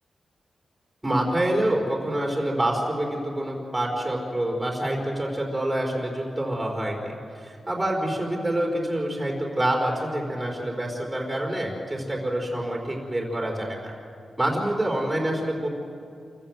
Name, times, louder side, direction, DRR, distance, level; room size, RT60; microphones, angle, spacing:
voice 1, 1.0-13.9 14.4-15.7, right 1 dB, 15° right, -1 dB, 4.6 m, -27 dB
28.0 x 15.0 x 8.0 m, 2.4 s
cardioid pair, 90°, 0 cm